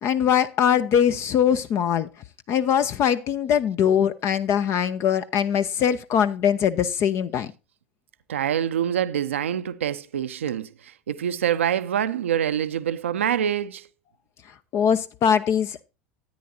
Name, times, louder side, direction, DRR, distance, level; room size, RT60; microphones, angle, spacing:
voice 1, 0.0-2.1 2.5-7.5 14.7-15.8, left 8 dB, 40° left, 0.7 m, -22 dB
voice 2, 8.3-13.9, right 9 dB, 75° right, 0.6 m, -25 dB
13.5 x 9.3 x 2.7 m
figure-of-eight pair, 80°, 7 cm